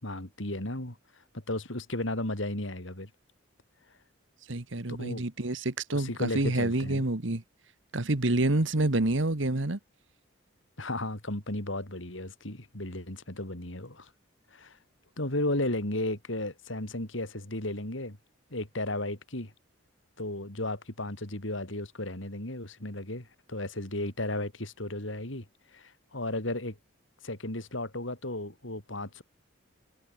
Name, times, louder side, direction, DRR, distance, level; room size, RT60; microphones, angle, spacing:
voice 1, 0.0-1.0 1.3-3.1 4.9-5.2 5.9-7.0 10.8-14.1 14.5-14.8 15.2-18.2 18.5-19.5 20.2-25.5 25.7-26.8 27.2-29.2, left 1 dB, 70° left, 4.1 m, -34 dB
voice 2, 4.5-7.4 7.9-9.8, right 2 dB, 70° right, 1.6 m, -28 dB
head